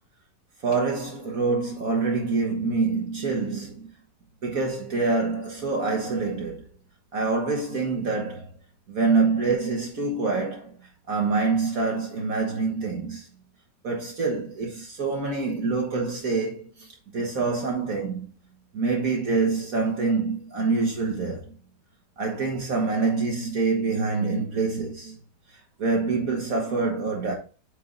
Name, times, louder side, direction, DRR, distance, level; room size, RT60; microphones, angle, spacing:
voice 1, 0.6-3.9 4.4-6.6 7.1-8.5 8.9-10.8 11.1-13.3 13.8-16.9 17.1-18.3 18.7-21.5 22.2-25.2 25.8-27.3, right 4 dB, 55° right, 1.6 m, -26 dB
8.2 x 3.4 x 3.8 m
omnidirectional pair, 1.8 m